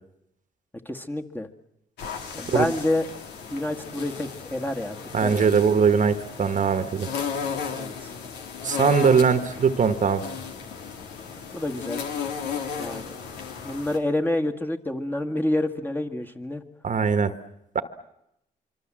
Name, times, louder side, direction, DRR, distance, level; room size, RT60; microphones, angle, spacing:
voice 1, 0.9-1.5 2.3-3.1 3.5-5.5 7.8-8.1 11.5-12.0 12.8-13.2 13.6-16.6, left 1 dB, 10° left, 4 dB, 1.8 m, -28 dB
sound 1, 2.0-14.0, left 6 dB, 90° left, 2.3 m, -35 dB
voice 2, 5.1-7.1 8.6-10.2 16.8-17.3 17.7-17.8, right 6 dB, 50° right, 11 dB, 1.4 m, -21 dB
25.5 x 24.0 x 7.6 m, 0.82 s
cardioid pair, 70°, 17 cm